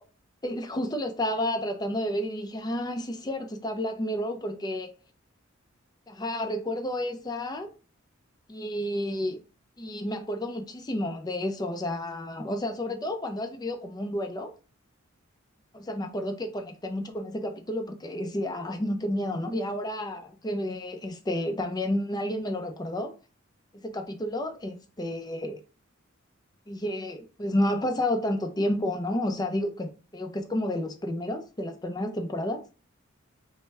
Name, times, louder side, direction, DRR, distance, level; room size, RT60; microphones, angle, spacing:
voice 1, 0.4-4.9 6.1-7.7 8.5-9.4 9.8-14.5 15.7-23.1 23.8-25.6 26.7-32.6, left 1 dB, 20° left, 0.5 m, -31 dB
4.5 x 2.1 x 3.3 m
head